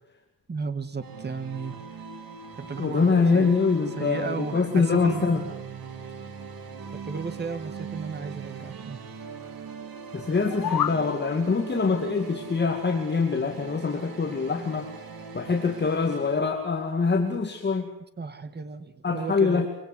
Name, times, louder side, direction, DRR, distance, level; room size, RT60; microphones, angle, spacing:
voice 1, 0.5-1.8 2.6-3.5 4.0-5.3 7.0-9.0 18.2-19.7, right 4 dB, 25° right, 11 dB, 1.8 m, -34 dB
sound 1, 1.0-16.4, right 6 dB, 60° right, 3.4 m, -41 dB
voice 2, 2.8-5.4 10.1-14.9 15.3-17.9 19.0-19.7, left 4 dB, 25° left, 2 dB, 2.5 m, -24 dB
sound 2, 10.3-11.0, left 10 dB, 60° left, 1.0 m, -28 dB
25.0 x 24.5 x 8.2 m, 0.76 s
wide cardioid pair, 160°, 39 cm